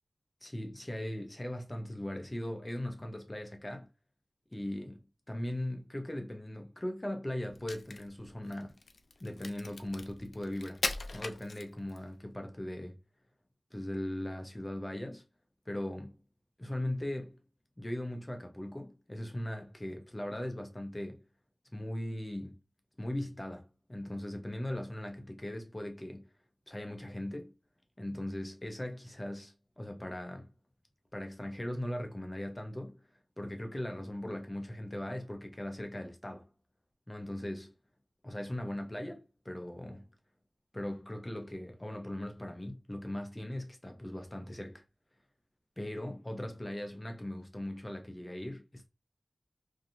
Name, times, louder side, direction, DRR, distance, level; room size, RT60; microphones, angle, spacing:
voice 1, 0.4-3.9 4.5-5.0 5.3-8.8 9.2-10.8 11.1-13.0 13.7-15.2 15.7-16.2 16.6-17.4 17.8-21.2 21.7-22.6 23.0-26.3 26.7-27.5 28.0-30.5 31.1-33.0 33.4-36.5 37.1-37.7 38.2-40.1 40.7-44.8 45.8-48.9, left 1 dB, 25° left, 0.7 m, -39 dB
Crack, 7.5-12.1, left 3 dB, 80° left, 0.4 m, -40 dB
3.0 x 2.7 x 2.6 m
wide cardioid pair, 55°, 0 cm